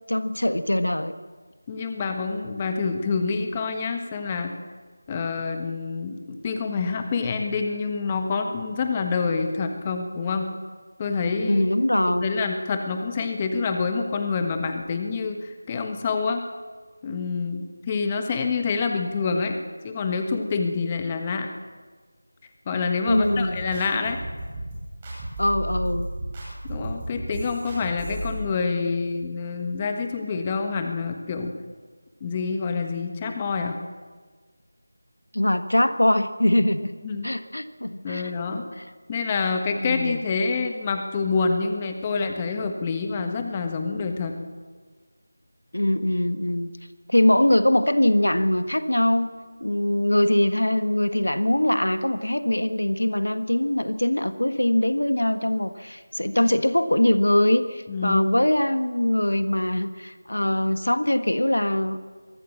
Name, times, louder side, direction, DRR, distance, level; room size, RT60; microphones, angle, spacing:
voice 1, 0.1-1.1 11.5-12.3 23.1-23.6 25.4-26.1 35.3-37.0 37.2-38.8 39.8-40.2 45.7-46.7 47.1-49.3 49.6-62.0, left 1 dB, 90° left, 10 dB, 1.5 m, -22 dB
voice 2, 1.7-4.6 5.1-10.5 11.0-11.6 12.2-16.4 17.0-19.6 19.8-21.5 22.6-24.2 26.7-31.6 32.2-33.8 36.5-36.6 37.0-37.3 38.0-38.6 39.1-44.4 57.9-58.2, left 4 dB, 20° left, 5 dB, 1.4 m, -27 dB
sound 1, 23.1-28.3, right 1 dB, 20° right, 6.9 m, -33 dB
23.5 x 15.5 x 7.3 m, 1.5 s
figure-of-eight pair, 170°, 0 cm